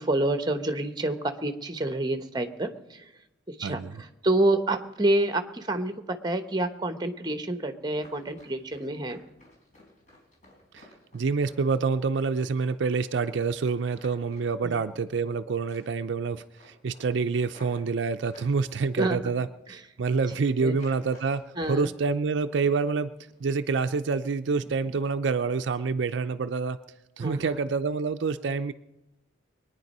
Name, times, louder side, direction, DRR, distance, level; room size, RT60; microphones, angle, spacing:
voice 1, 0.0-3.1 3.5-9.2 14.6-14.8 19.0-19.3 19.7-19.8 20.6-20.8 21.6-21.9 27.2-27.6, right 1 dB, 20° right, 8 dB, 0.9 m, -28 dB
Run, 7.9-15.4 15.7-16.1 16.4-18.5 19.1-19.7 19.9-20.2 20.7-21.8 22.1-23.0 23.3-23.5 23.9-24.2 24.5-24.7 25.1-25.3 25.7-25.8, left 1 dB, 35° left, 4.5 m, -55 dB
voice 2, 11.1-21.4 21.7-23.1 23.4-26.8 27.2-28.7, right 4 dB, 60° right, 10 dB, 0.4 m, -27 dB
22.0 x 9.7 x 5.4 m, 0.96 s
head